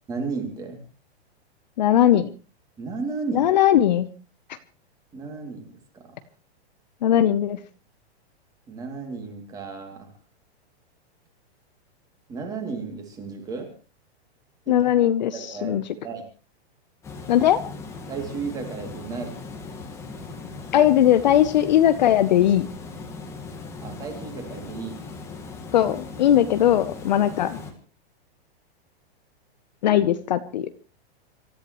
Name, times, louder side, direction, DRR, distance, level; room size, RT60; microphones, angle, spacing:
voice 1, 0.1-0.8 2.8-3.5 5.1-6.2 8.7-10.1 12.3-13.7 14.7-14.9 15.3-16.2 18.1-19.3 23.8-25.0, right 4 dB, 10° right, 4 dB, 2.7 m, -34 dB
voice 2, 1.8-2.3 3.3-4.1 7.0-7.6 14.7-15.8 17.3-17.6 20.7-22.7 25.7-27.6 29.8-30.7, left 11 dB, 40° left, 11 dB, 0.8 m, -19 dB
Water, 17.0-27.7, left 4 dB, 10° left, 1.7 m, -38 dB
26.5 x 14.0 x 3.1 m, 0.34 s
hypercardioid pair, 175°, 33 cm